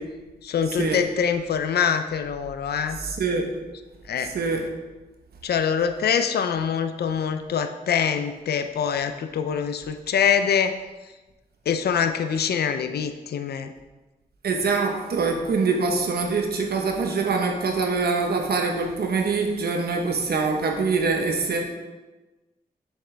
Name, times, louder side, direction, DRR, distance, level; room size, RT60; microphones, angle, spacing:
voice 1, 0.4-3.0 4.1-4.3 5.4-10.8 11.7-13.7, left 7 dB, 90° left, 8 dB, 0.5 m, -24 dB
voice 2, 3.0-3.5 4.3-4.6 14.4-21.6, right 4 dB, 80° right, 2 dB, 1.1 m, -24 dB
7.2 x 7.1 x 3.4 m, 1.2 s
cardioid pair, 85°, 16 cm